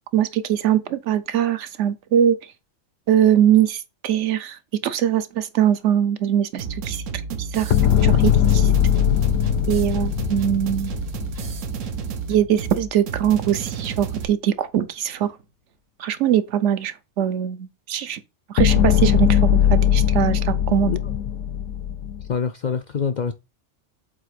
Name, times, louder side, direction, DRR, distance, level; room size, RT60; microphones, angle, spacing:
voice 1, 0.1-2.4 3.1-7.0 7.4-7.8 8.0-8.7 9.7-10.9 12.3-15.4 16.0-18.2 18.5-20.9, right 10 dB, 75° right, 0.9 m, -22 dB
sound 1, 6.6-14.3, right 6 dB, 90° right, 1.2 m, -31 dB
sound 2, 7.7-12.0 18.6-22.3, left 10 dB, 80° left, 0.9 m, -20 dB
voice 2, 22.3-23.3, left 6 dB, 60° left, 0.4 m, -25 dB
7.6 x 2.8 x 5.0 m
omnidirectional pair, 1.3 m